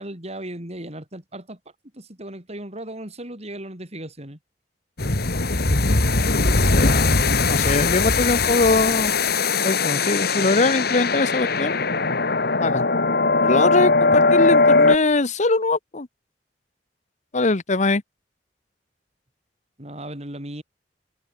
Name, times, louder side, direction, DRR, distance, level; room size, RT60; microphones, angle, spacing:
voice 1, 0.0-1.6 1.9-4.4 19.8-20.6, right 1 dB, 35° right, 6.3 m, -36 dB
sound 1, 5.0-15.0, left 3 dB, 60° left, 2.6 m, -20 dB
voice 2, 6.7-7.1 7.5-9.1 9.6-11.8 12.6-12.9 13.4-16.1 17.3-18.0, left 3 dB, 45° left, 1.1 m, -22 dB
head